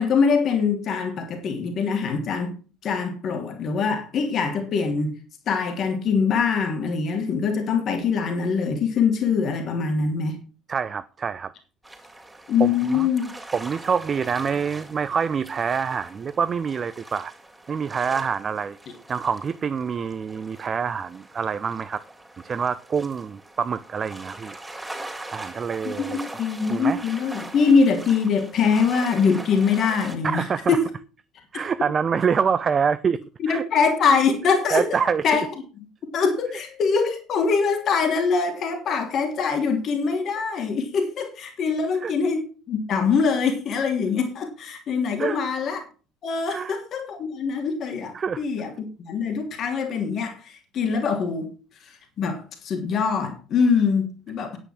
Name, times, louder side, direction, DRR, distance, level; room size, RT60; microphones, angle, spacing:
voice 1, 0.0-2.5 2.8-5.1 5.5-10.4 12.5-13.2 25.8-30.9 33.4-34.8 35.2-35.5 36.1-45.8 46.2-51.5 51.8-54.6, left 5 dB, 45° left, 2.9 m, -23 dB
voice 2, 10.7-11.5 12.6-13.1 13.5-17.3 17.7-18.8 19.1-22.0 22.4-24.6 25.3-26.2 26.7-27.0 30.2-30.8 31.5-33.2 33.5-33.6 34.7-35.2 42.0-42.1 45.2-45.4 46.5-46.7 48.1-48.4, right 6 dB, 35° right, 0.7 m, -26 dB
sound 1, 11.8-30.2, right 1 dB, 10° right, 3.5 m, -42 dB
10.0 x 9.2 x 6.1 m
figure-of-eight pair, 60°, 0 cm